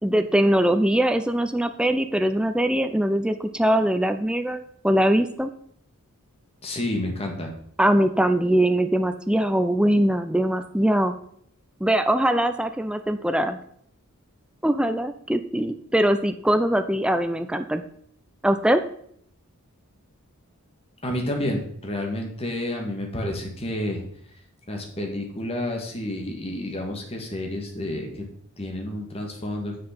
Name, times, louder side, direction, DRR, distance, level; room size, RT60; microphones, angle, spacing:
voice 1, 0.0-5.5 7.8-11.1 11.8-13.6 14.6-17.8 18.4-18.8, right 1 dB, 5° right, 8 dB, 0.4 m, -22 dB
voice 2, 6.6-7.5 21.0-24.0 24.7-28.2 28.6-29.8, left 1 dB, 25° left, 2 dB, 1.8 m, -30 dB
7.6 x 6.6 x 5.9 m, 0.64 s
head